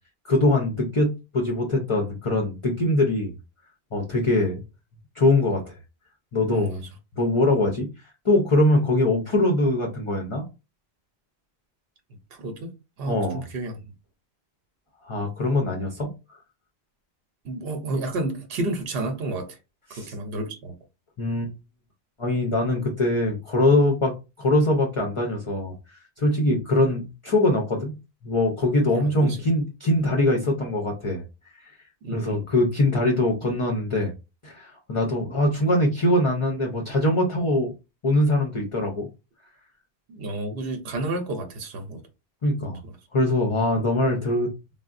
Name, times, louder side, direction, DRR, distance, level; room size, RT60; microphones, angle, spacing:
voice 1, 0.2-3.3 3.9-4.6 5.2-5.8 6.3-6.8 7.2-7.9 8.2-10.4 13.1-13.4 15.0-16.1 19.9-20.1 21.2-21.5 22.2-25.7 26.2-27.9 28.2-31.2 31.6-31.7 32.1-34.1 34.4-37.7 38.0-39.1 42.4-42.8 43.1-44.5, left 1 dB, 40° left, 0.5 m, -22 dB
voice 2, 12.3-13.8 17.4-19.6 20.0-20.7 28.9-29.5 32.0-32.5 40.1-42.0 42.8-42.9, right 2 dB, 70° right, 0.8 m, -31 dB
3.5 x 2.0 x 2.4 m
omnidirectional pair, 1.1 m